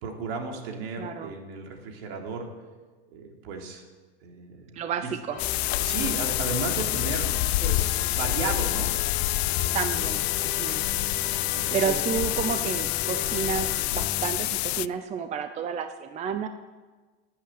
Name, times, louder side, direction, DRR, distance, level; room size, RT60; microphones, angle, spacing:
voice 1, 0.0-2.5 3.1-3.8 4.2-5.1 5.8-7.3 7.6-8.9 11.5-12.0, right 4 dB, 65° right, 2 dB, 3.5 m, -34 dB
voice 2, 1.0-1.3 4.7-5.4 7.6-7.8 9.7-10.8 11.7-16.5, right 7 dB, 20° right, 9 dB, 0.7 m, -31 dB
Organ, 5.3-14.4, left 6 dB, 40° left, 3.3 m, -36 dB
sound 1, 5.4-14.9, left 19 dB, 75° left, 0.5 m, -27 dB
16.5 x 8.7 x 9.2 m, 1.3 s
supercardioid pair, 145°, 32 cm